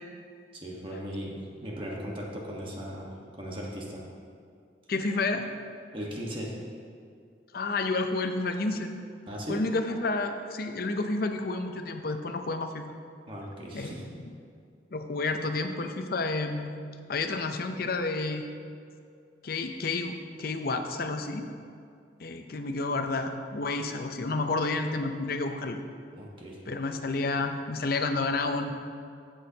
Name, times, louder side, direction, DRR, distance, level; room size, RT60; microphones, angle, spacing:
voice 1, 0.5-1.3 1.6-3.1 3.4-4.0 5.9-6.5 9.3-9.6 13.3-14.0 26.2-26.6, equal, 30° right, -3 dB, 1.3 m, -37 dB
voice 2, 4.9-5.5 7.5-8.9 9.5-12.9 13.7-13.9 14.2-14.3 14.9-16.7 17.1-18.4 19.4-21.5 22.2-25.8 26.7-28.7, left 3 dB, 55° left, 7 dB, 0.6 m, -30 dB
14.0 x 6.2 x 2.8 m, 2.3 s
head